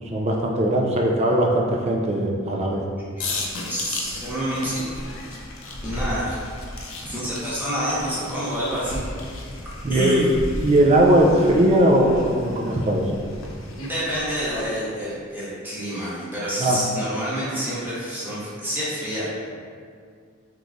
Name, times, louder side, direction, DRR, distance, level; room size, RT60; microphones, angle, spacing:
voice 1, 0.1-2.8 9.8-10.3 10.6-13.0 16.6-16.8, right 1 dB, 30° right, 0 dB, 0.4 m, -19 dB
sound 1, 3.2-14.6, left 2 dB, 70° left, 0.5 m, -35 dB
voice 2, 3.7-4.8 5.8-6.4 7.0-9.0 9.9-10.2 13.8-19.3, equal, 10° right, -9 dB, 0.8 m, -28 dB
3.6 x 3.0 x 2.5 m, 2.1 s
head